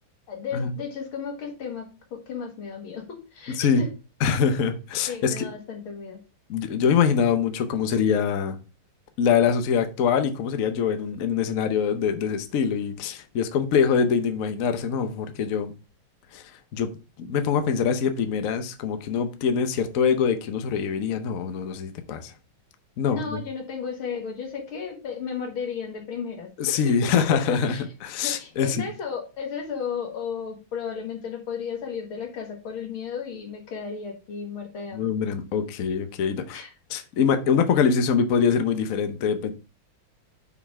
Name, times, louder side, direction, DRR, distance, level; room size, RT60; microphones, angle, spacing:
voice 1, 0.3-3.9 5.1-6.2 23.1-27.1 27.5-27.8 28.2-35.1 36.5-36.7, left 6 dB, 80° left, 2.5 m, -34 dB
voice 2, 4.2-5.5 6.5-8.6 9.2-15.7 16.3-16.4 16.7-16.9 17.2-22.3 23.0-23.4 26.6-28.8 34.9-36.6 36.9-39.5, left 6 dB, 60° left, 0.9 m, -24 dB
5.6 x 4.5 x 4.6 m
omnidirectional pair, 2.2 m